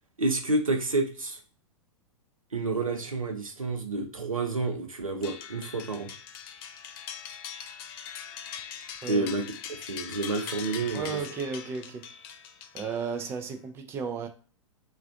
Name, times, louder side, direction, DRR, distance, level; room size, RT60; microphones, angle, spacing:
voice 1, 0.2-1.4 2.5-6.1 9.1-9.4 9.9-11.1, right 3 dB, 90° right, 0.7 m, -29 dB
sound 1, 5.2-13.4, left 8 dB, 45° left, 0.4 m, -42 dB
voice 2, 10.9-12.1 12.7-14.3, right 5 dB, 15° right, 0.4 m, -34 dB
3.2 x 2.4 x 2.4 m
figure-of-eight pair, 105°, 17 cm